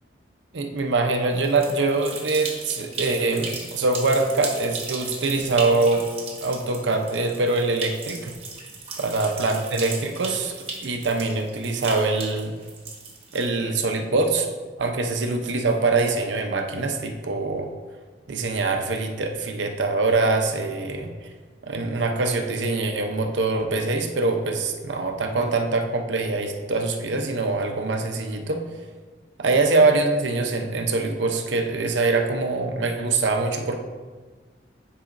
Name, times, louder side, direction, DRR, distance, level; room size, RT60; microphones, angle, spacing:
voice 1, 0.5-6.0 6.4-8.3 9.0-12.5 13.3-14.5 14.8-17.7 18.3-21.1 21.6-28.6 29.4-33.8, right 3 dB, 80° right, 4 dB, 0.7 m, -24 dB
sound 1, 1.3-13.8, right 4 dB, 35° right, 1.1 m, -36 dB
9.9 x 4.9 x 2.6 m, 1.4 s
head